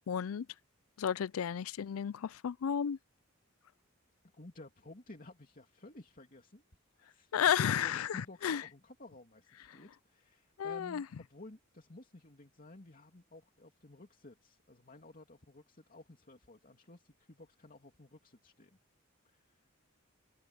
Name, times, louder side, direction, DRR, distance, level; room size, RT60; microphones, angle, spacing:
voice 1, 0.1-0.5 1.0-3.0 7.3-8.6 10.6-11.0, left 8 dB, 85° left, 0.4 m, -32 dB
voice 2, 4.3-6.6 7.0-18.8 19.2-19.7, left 2 dB, 40° left, 2.7 m, -54 dB
head